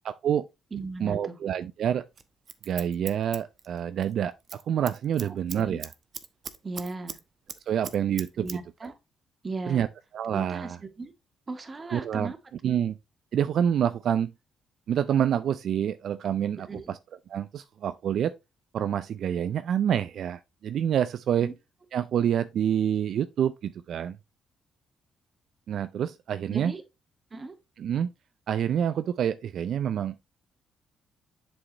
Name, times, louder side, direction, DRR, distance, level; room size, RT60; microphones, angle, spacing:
voice 1, 0.0-0.5 1.0-2.0 2.7-5.9 7.7-8.6 9.7-9.9 10.1-10.8 11.9-12.3 12.6-12.9 13.3-14.3 14.9-17.0 17.3-18.3 18.7-21.5 21.9-24.2 25.7-26.7 27.8-28.1 28.5-30.2, right 9 dB, 65° right, 0.4 m, -27 dB
voice 2, 0.7-1.4 5.6-5.8 6.6-7.2 8.4-8.9 9.4-9.8 10.3-11.1 11.5-12.4 12.6-12.7 16.7-16.9 21.4-21.5 26.5-26.8 27.3-27.5, right 3 dB, 30° right, 1.7 m, -36 dB
Scissors, 2.2-4.1 4.4-4.6 4.9-7.2 7.5-8.6 8.8-8.9, right 6 dB, 50° right, 1.0 m, -39 dB
7.7 x 6.3 x 3.0 m
cardioid pair, 90°, 0 cm